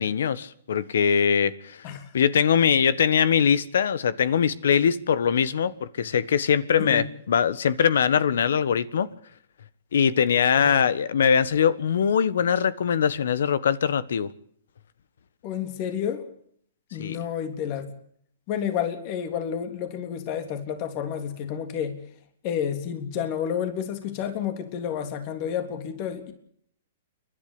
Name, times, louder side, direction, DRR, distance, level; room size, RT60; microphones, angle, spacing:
voice 1, 0.0-1.8 2.1-9.1 9.9-14.3 17.0-17.2, left 7 dB, 75° left, 1.4 m, -22 dB
voice 2, 15.4-16.3 16.9-17.9 18.5-22.0 22.4-26.3, left 8 dB, 45° left, 3.4 m, -30 dB
29.5 x 12.0 x 8.7 m
hypercardioid pair, 130°, 0 cm